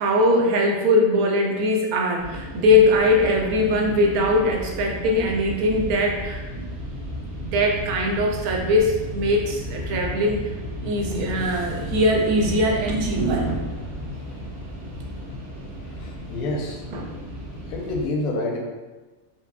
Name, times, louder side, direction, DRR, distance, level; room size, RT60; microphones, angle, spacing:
voice 1, 0.0-6.7 7.4-10.4 10.8-13.6 16.9-17.1, left 1 dB, 90° right, 0 dB, 1.1 m, -21 dB
sound 1, 2.2-18.1, equal, 70° right, 1.3 m, -34 dB
voice 2, 16.0-16.8 17.7-18.6, left 2 dB, 85° left, 1 dB, 1.1 m, -28 dB
4.2 x 2.1 x 2.3 m, 1.2 s
omnidirectional pair, 1.5 m